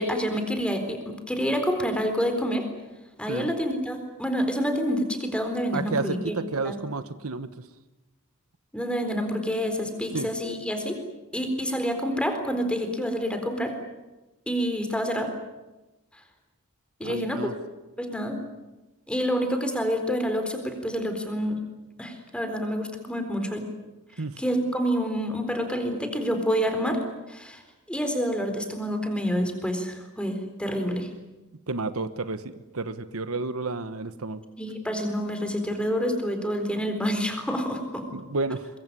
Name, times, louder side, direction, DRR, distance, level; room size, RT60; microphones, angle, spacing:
voice 1, 0.0-2.7 3.2-6.3 6.6-6.8 8.7-11.0 11.3-13.7 14.5-15.3 17.0-17.4 18.0-18.4 19.1-21.6 22.0-23.7 24.4-27.0 27.3-27.6 27.9-31.1 34.6-38.0, equal, 5° left, 6 dB, 4.1 m, -28 dB
voice 2, 5.7-7.5 10.1-10.3 17.0-17.5 24.2-24.4 31.7-34.4 38.1-38.7, right 3 dB, 65° right, 12 dB, 1.2 m, -31 dB
23.5 x 22.0 x 9.9 m, 1.1 s
head